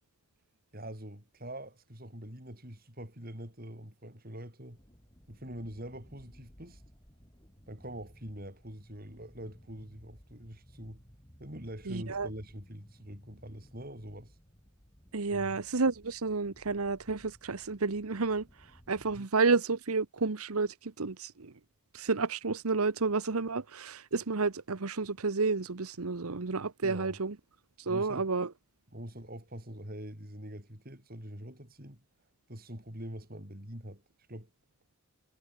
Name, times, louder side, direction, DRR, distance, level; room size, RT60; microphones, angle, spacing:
voice 1, 0.7-4.8 5.3-6.8 7.7-11.0 11.4-14.4 15.3-15.6 19.1-19.3 26.8-27.2 27.9-28.3 28.9-32.0 32.5-34.0 34.3-34.5, right 1 dB, 40° right, 6.9 m, -44 dB
sound 1, 4.7-19.2, equal, 20° left, 6.0 m, -58 dB
voice 2, 11.9-12.3 15.1-21.5 21.9-27.4 27.8-28.5, right 4 dB, 85° right, 1.1 m, -31 dB
head